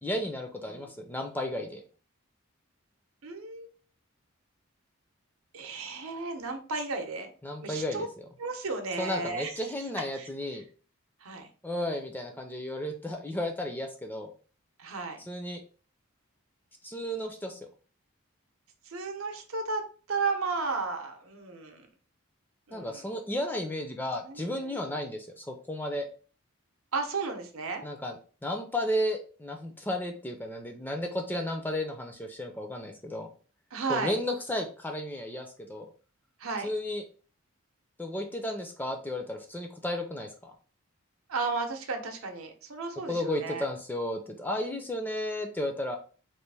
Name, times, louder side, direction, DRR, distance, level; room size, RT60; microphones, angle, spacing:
voice 1, 0.0-1.8 7.4-8.1 9.0-10.6 11.6-14.3 15.3-15.6 16.8-17.7 22.7-26.1 27.8-28.2 28.4-33.3 33.9-35.9 36.6-37.0 38.0-40.5 43.1-46.0, left 1 dB, 10° left, 4 dB, 0.4 m, -33 dB
voice 2, 3.2-3.7 5.5-7.3 7.6-8.1 8.4-9.5 10.1-10.3 11.2-11.5 14.8-15.2 18.9-19.8 20.1-21.9 22.7-23.0 24.2-24.8 26.9-27.8 33.7-34.2 36.4-36.7 41.3-43.7, right 4 dB, 85° right, 5 dB, 0.7 m, -34 dB
3.1 x 2.4 x 3.3 m, 0.38 s
head